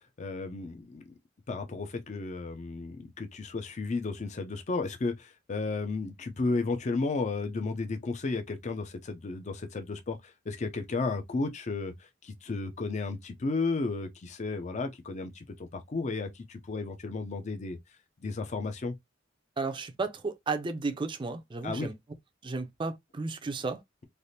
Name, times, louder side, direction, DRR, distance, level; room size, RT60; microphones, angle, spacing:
voice 1, 0.2-1.0 1.5-17.8 18.2-18.9 21.6-21.9, left 3 dB, 40° left, 0.5 m, -33 dB
voice 2, 19.6-21.9 22.4-24.0, right 3 dB, 25° right, 0.4 m, -33 dB
3.3 x 2.4 x 2.6 m
head